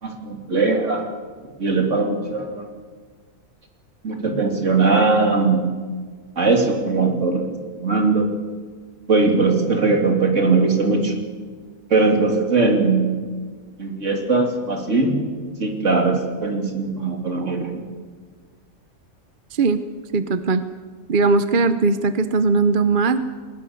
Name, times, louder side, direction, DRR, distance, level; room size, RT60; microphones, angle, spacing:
voice 1, 0.0-1.0 1.6-2.7 4.0-5.7 6.4-8.3 9.1-11.1 11.9-13.1 13.8-15.1 15.6-17.8, right 3 dB, 60° right, 2 dB, 3.3 m, -20 dB
voice 2, 19.5-19.8 20.1-20.6 21.1-23.2, right 4 dB, 45° right, 11 dB, 0.8 m, -19 dB
21.5 x 20.0 x 7.1 m, 1.5 s
omnidirectional pair, 1.4 m